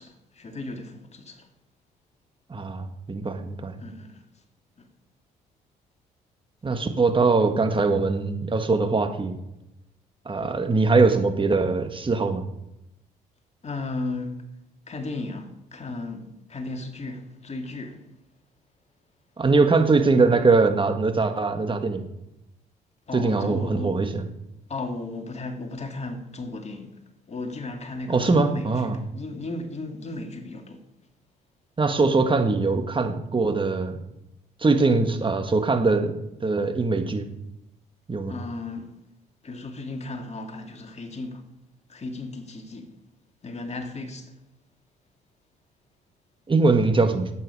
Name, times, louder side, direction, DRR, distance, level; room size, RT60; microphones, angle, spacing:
voice 1, 0.0-1.5 3.8-4.3 4.8-4.9 13.6-14.4 14.9-18.1 23.1-24.0 24.7-27.0 27.3-30.9 38.3-39.0 39.4-41.4 41.9-42.9 43.4-44.4, left 2 dB, 35° left, 2.3 m, -35 dB
voice 2, 2.5-3.7 6.6-9.4 10.3-12.5 19.4-22.1 23.1-24.2 28.1-29.0 31.8-34.0 34.6-37.3 38.1-38.3 46.5-47.3, right 3 dB, 25° right, 1.8 m, -22 dB
13.0 x 8.9 x 4.9 m
hypercardioid pair, 50°, 19 cm